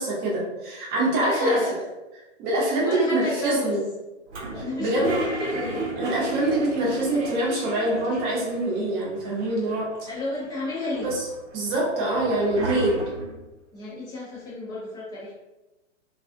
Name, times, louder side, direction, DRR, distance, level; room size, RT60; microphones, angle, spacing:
voice 1, 0.0-1.6 2.4-3.8 4.8-5.1 6.0-10.1 11.0-11.1 11.5-12.9, right 1 dB, 25° right, -4 dB, 0.8 m, -24 dB
voice 2, 1.1-1.8 2.8-3.9 4.5-5.9 10.1-11.1 13.7-15.3, left 2 dB, 10° left, -7 dB, 0.5 m, -31 dB
Toilet flush, 4.3-8.7 8.9-9.0 9.2-10.1 10.6-13.4, right 2 dB, 65° right, 0.7 m, -33 dB
2.3 x 2.3 x 2.6 m, 1.0 s
figure-of-eight pair, 115°, 37 cm